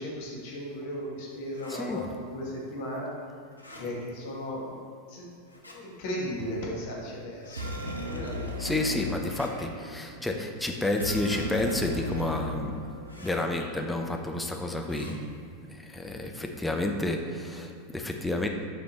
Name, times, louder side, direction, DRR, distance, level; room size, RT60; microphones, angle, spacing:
voice 1, 0.0-2.0 2.3-3.1 3.7-4.8 5.1-5.3 5.7-8.7, left 1 dB, 50° left, -3 dB, 1.7 m, -36 dB
sound 1, 1.5-1.8 3.5-3.8 5.5-5.8 7.4-7.7 9.2-9.5 11.2-11.5 13.0-13.3 14.8-15.1, left 1 dB, 85° left, 0.9 m, -48 dB
voice 2, 1.7-2.1 8.6-12.9 13.2-15.3 15.7-18.5, left 2 dB, 5° left, 3 dB, 0.7 m, -30 dB
sound 2, 7.4-13.5, left 1 dB, 80° right, 0.7 m, -37 dB
8.6 x 5.2 x 3.3 m, 2.4 s
figure-of-eight pair, 90°, 0 cm